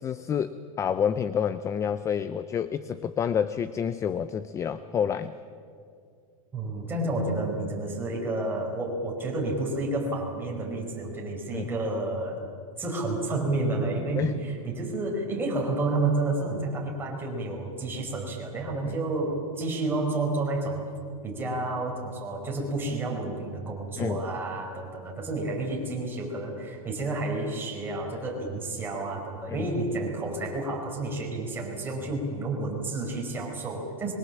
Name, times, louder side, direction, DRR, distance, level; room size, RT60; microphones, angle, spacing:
voice 1, 0.0-5.3 11.5-11.7 14.2-14.4 18.9-19.0 24.0-24.2 29.5-29.7, left 8 dB, 15° left, 13 dB, 0.5 m, -28 dB
voice 2, 6.5-12.4 12.8-20.8 21.2-34.1, right 2 dB, 10° right, -1 dB, 5.3 m, -30 dB
25.0 x 23.0 x 7.4 m, 2.3 s
supercardioid pair, 150°, 18 cm